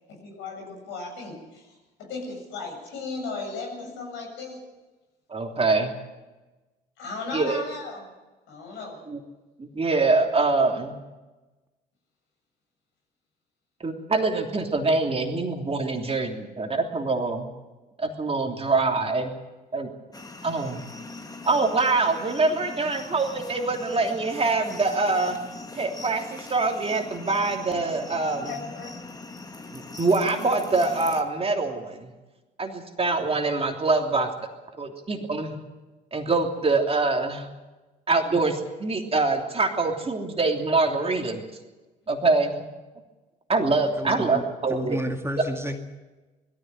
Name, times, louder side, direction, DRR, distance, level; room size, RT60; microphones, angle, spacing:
voice 1, 0.1-1.7 2.0-4.6 7.0-8.1 8.5-9.0 28.5-28.9, left 3 dB, 65° left, 0 dB, 7.6 m, -36 dB
voice 2, 5.3-5.9 7.3-7.6 9.1-9.2 9.6-10.9 13.8-17.5 18.0-19.3 19.7-19.9 20.4-20.8 21.4-25.4 25.7-28.6 29.7-32.1 32.6-34.3 34.8-35.5 36.1-37.5 38.1-41.4 42.1-42.6 43.5-45.0, right 3 dB, 25° right, 3 dB, 3.2 m, -24 dB
sound 1, 20.1-31.2, left 3 dB, 15° left, 2.4 m, -41 dB
voice 3, 44.0-44.4 44.7-45.8, equal, 10° right, 5 dB, 2.1 m, -30 dB
21.0 x 15.0 x 9.1 m, 1.1 s
figure-of-eight pair, 50°, 21 cm